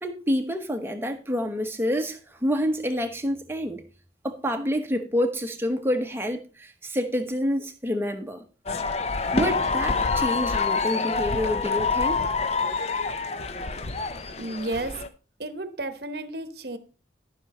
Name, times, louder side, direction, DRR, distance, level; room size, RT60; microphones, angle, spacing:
voice 1, 0.0-3.8 4.2-8.4 9.3-12.3, equal, 15° right, 1.1 m, -28 dB
sound 1, 8.7-15.1, left 4 dB, 35° left, 0.6 m, -26 dB
voice 2, 14.4-15.0 15.4-16.8, right 2 dB, 55° right, 1.0 m, -32 dB
12.5 x 6.1 x 4.2 m
head